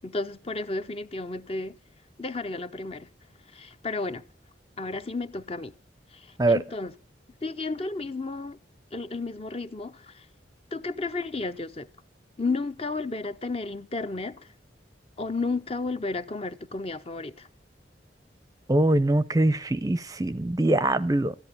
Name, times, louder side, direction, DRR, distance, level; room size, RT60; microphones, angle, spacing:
voice 1, 0.0-1.8 2.2-3.1 3.5-4.2 4.8-5.7 6.1-6.9 7.4-8.6 8.9-10.3 10.7-11.9 12.4-14.5 15.2-17.5, left 3 dB, 30° left, 0.7 m, -32 dB
voice 2, 18.7-21.3, right 1 dB, 20° right, 0.6 m, -23 dB
14.0 x 11.0 x 6.8 m
head